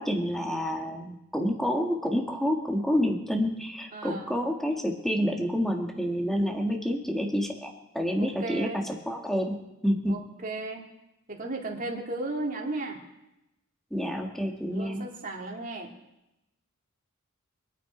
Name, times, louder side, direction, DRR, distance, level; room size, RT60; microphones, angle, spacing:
voice 1, 0.0-9.6 9.8-10.1 13.9-15.0, equal, ahead, 2 dB, 1.6 m, -28 dB
voice 2, 3.9-4.4 8.2-8.8 10.1-10.8 11.3-13.0 14.2-14.3 14.7-15.9, right 2 dB, 40° right, 0 dB, 2.3 m, -35 dB
25.0 x 9.2 x 5.1 m, 0.93 s
head